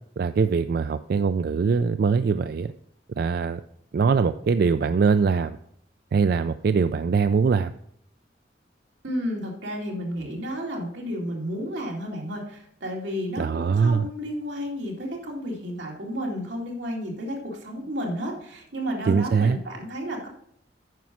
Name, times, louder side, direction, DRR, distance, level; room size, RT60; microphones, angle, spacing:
voice 1, 0.2-2.7 3.2-3.6 3.9-5.6 6.1-7.7 13.4-14.1 19.1-19.6, right 5 dB, 55° right, 11 dB, 0.3 m, -22 dB
voice 2, 9.0-20.3, equal, 90° right, -1 dB, 2.5 m, -32 dB
9.3 x 5.9 x 6.0 m, 0.69 s
head